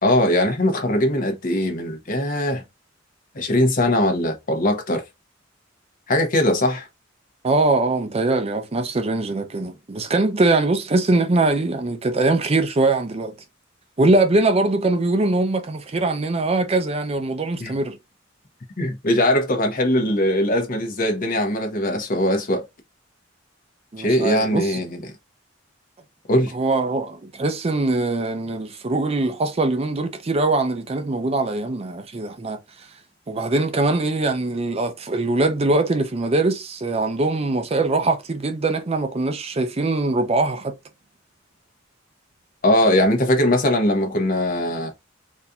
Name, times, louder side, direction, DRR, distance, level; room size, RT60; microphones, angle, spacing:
voice 1, 0.0-2.6 3.3-5.0 6.1-6.9 17.6-17.8 18.8-22.6 24.0-25.0 26.3-26.5 42.6-44.9, left 1 dB, 45° left, 0.9 m, -20 dB
voice 2, 7.4-13.3 14.0-18.0 23.9-24.8 26.5-32.6 33.3-40.7, right 2 dB, 30° right, 0.5 m, -22 dB
4.1 x 2.6 x 2.3 m
head